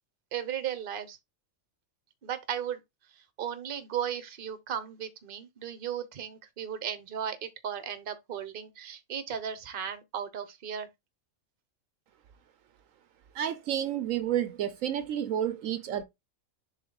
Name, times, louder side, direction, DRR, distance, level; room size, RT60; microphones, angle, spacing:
voice 1, 0.3-1.2 2.2-2.8 3.1-10.9, right 8 dB, 45° right, 1.0 m, -36 dB
voice 2, 13.3-16.0, right 10 dB, 75° right, 1.0 m, -30 dB
6.9 x 3.5 x 3.9 m
omnidirectional pair, 1.4 m